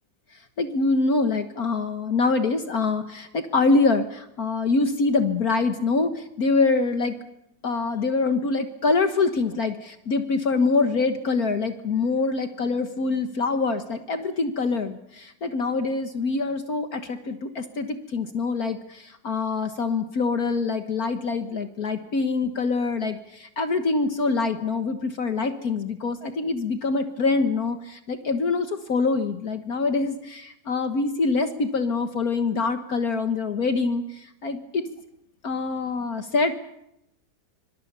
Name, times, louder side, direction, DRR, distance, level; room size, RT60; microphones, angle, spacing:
voice 1, 0.6-7.2 7.6-34.9 35.4-36.5, left 3 dB, 55° left, 8 dB, 1.7 m, -25 dB
26.0 x 25.0 x 6.8 m, 0.81 s
omnidirectional pair, 2.0 m